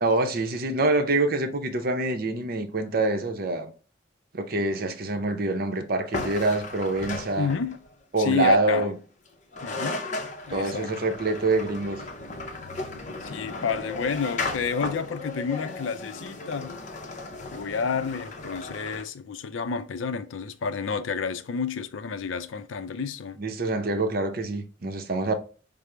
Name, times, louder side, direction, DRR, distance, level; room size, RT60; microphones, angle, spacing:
voice 1, 0.0-3.7 4.3-7.5 8.1-8.9 10.5-12.0 23.4-25.3, right 2 dB, 50° right, 0.6 m, -25 dB
sound 1, 6.1-7.9 9.3-9.4 9.5-19.0, left 2 dB, 40° left, 0.6 m, -35 dB
voice 2, 7.4-7.8 8.2-8.9 9.6-10.0 10.5-10.9 13.2-16.8 17.5-23.4, left 5 dB, 90° left, 0.4 m, -30 dB
5.0 x 2.0 x 4.3 m
head